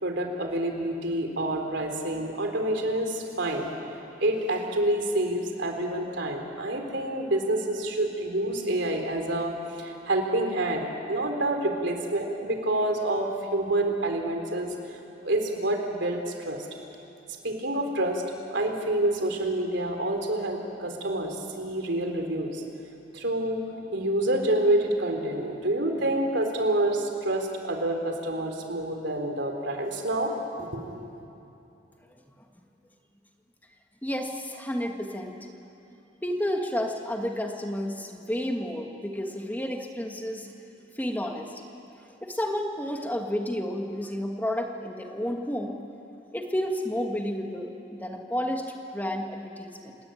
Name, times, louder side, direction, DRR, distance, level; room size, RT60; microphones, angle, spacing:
voice 1, 0.0-16.7 17.3-18.2 18.5-22.6 23.1-30.3 30.6-31.1, right 1 dB, 65° right, 4 dB, 3.6 m, -28 dB
voice 2, 34.0-35.4 36.2-40.5 41.0-41.5 42.2-45.8 46.3-48.6 48.9-50.0, equal, 10° left, 2 dB, 1.7 m, -31 dB
30.0 x 19.0 x 9.1 m, 2.8 s
head